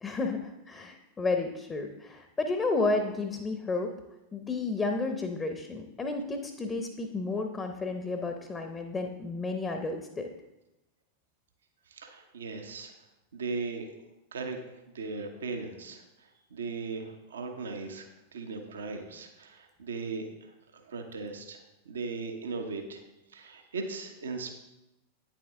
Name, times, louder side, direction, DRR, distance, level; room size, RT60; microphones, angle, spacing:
voice 1, 0.0-3.9 4.3-10.3, left 3 dB, 15° left, 5 dB, 0.8 m, -32 dB
voice 2, 11.9-12.9 13.3-13.9 14.3-14.6 14.9-23.0 23.3-24.6, right 4 dB, 65° right, 5 dB, 0.9 m, -38 dB
9.2 x 7.2 x 3.6 m, 0.97 s
figure-of-eight pair, 90°, 0 cm